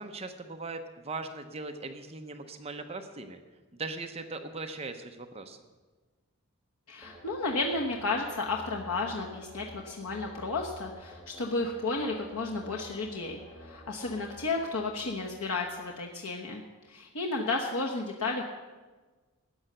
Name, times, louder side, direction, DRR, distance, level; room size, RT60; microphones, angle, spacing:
voice 1, 0.0-3.4 3.7-5.6, right 3 dB, 25° right, 6 dB, 0.8 m, -39 dB
voice 2, 6.9-16.6 16.9-18.4, left 3 dB, 85° left, 0 dB, 1.1 m, -32 dB
sound 1, 7.0-15.7, equal, 10° left, 2.4 m, -50 dB
13.5 x 9.6 x 6.7 m, 1.3 s
head